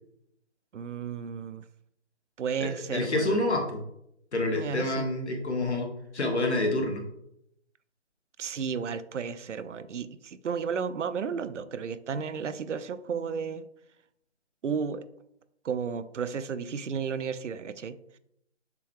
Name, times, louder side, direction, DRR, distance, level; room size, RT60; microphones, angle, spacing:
voice 1, 0.7-1.6 2.4-3.4 4.5-5.1 8.4-13.7 14.6-15.1 15.6-18.2, right 6 dB, 85° right, 13 dB, 0.5 m, -33 dB
voice 2, 2.6-3.8 4.3-5.9 6.1-7.0, left 2 dB, 70° left, 2 dB, 1.2 m, -28 dB
6.7 x 2.2 x 3.2 m, 0.77 s
figure-of-eight pair, 160°, 35 cm